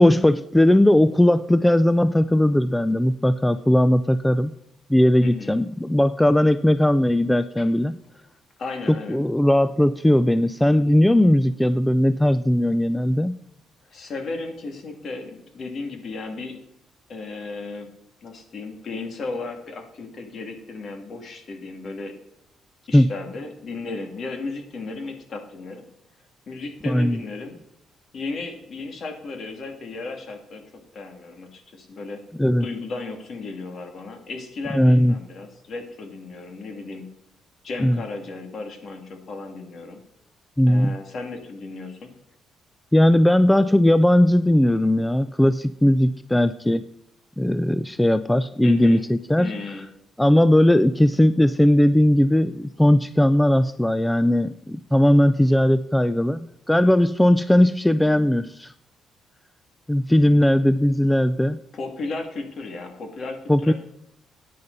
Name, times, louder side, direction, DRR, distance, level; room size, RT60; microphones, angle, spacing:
voice 1, 0.0-4.5 4.9-8.0 9.1-13.4 22.9-23.1 26.9-27.2 32.4-32.7 34.7-35.1 37.8-38.0 40.6-41.0 42.9-46.8 47.4-49.5 50.2-58.7 59.9-61.6 63.5-63.7, left 1 dB, 5° left, 14 dB, 0.4 m, -18 dB
voice 2, 5.2-5.6 7.6-7.7 8.6-9.2 13.9-16.6 17.1-17.9 18.2-22.1 22.9-25.9 26.5-27.6 28.1-32.2 32.6-37.1 37.6-40.0 40.7-42.1 48.6-49.0 49.4-49.9 61.7-63.7, left 3 dB, 55° left, 4 dB, 2.4 m, -35 dB
13.5 x 9.3 x 4.0 m, 0.78 s
cardioid pair, 90°, 0 cm